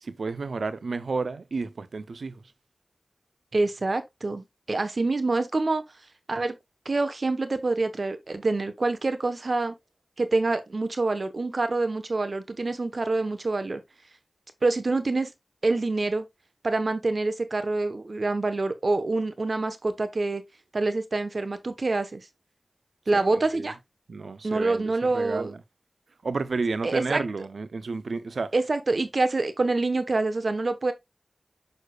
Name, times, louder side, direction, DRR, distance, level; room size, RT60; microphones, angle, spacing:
voice 1, 0.0-2.4 23.1-23.7 24.1-25.6 26.2-28.5, right 4 dB, 90° right, 0.5 m, -31 dB
voice 2, 3.5-5.8 6.3-6.6 6.8-9.8 10.2-13.8 14.6-15.3 15.6-16.3 16.6-20.4 20.7-22.2 23.1-23.8 24.4-25.5 26.8-27.2 28.5-30.9, right 3 dB, 65° right, 1.0 m, -26 dB
6.5 x 6.4 x 2.3 m
wide cardioid pair, 50°, 0 cm